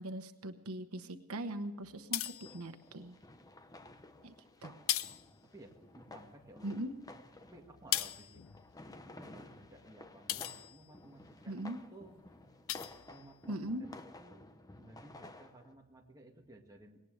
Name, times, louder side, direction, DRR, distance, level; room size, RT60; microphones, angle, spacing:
voice 1, 0.0-2.2 2.5-3.2 4.2-4.3 4.6-4.8 6.6-6.9 11.5-11.8 13.5-13.9, right 1 dB, 90° right, 8 dB, 1.1 m, -40 dB
sound 1, 1.8-3.1 3.8-4.3 4.6-6.1 6.4-11.3 11.8-12.1 12.4-13.8, left 13 dB, 70° left, 0.5 m, -40 dB
sound 2, 2.4-15.7, left 2 dB, 15° left, 0.9 m, -54 dB
voice 2, 5.4-6.8 7.1-8.4 9.0-11.6 11.9-12.2 13.0-14.5 14.8-17.0, right 2 dB, 15° right, 1 dB, 1.9 m, -57 dB
19.5 x 18.5 x 3.3 m, 1.2 s
head